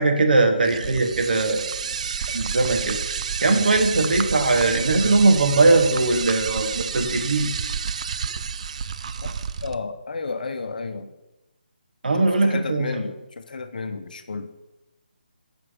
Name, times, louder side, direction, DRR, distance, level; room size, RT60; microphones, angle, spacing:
voice 1, 0.0-1.7 2.2-3.0 3.4-7.5 12.0-13.1, right 3 dB, 60° right, 5 dB, 1.3 m, -20 dB
sound 1, 0.6-9.7, right 6 dB, 40° right, 0.4 m, -30 dB
voice 2, 9.6-11.1 12.2-14.5, left 4 dB, 55° left, 9 dB, 0.8 m, -32 dB
7.7 x 6.1 x 5.1 m, 0.99 s
figure-of-eight pair, 145°, 5 cm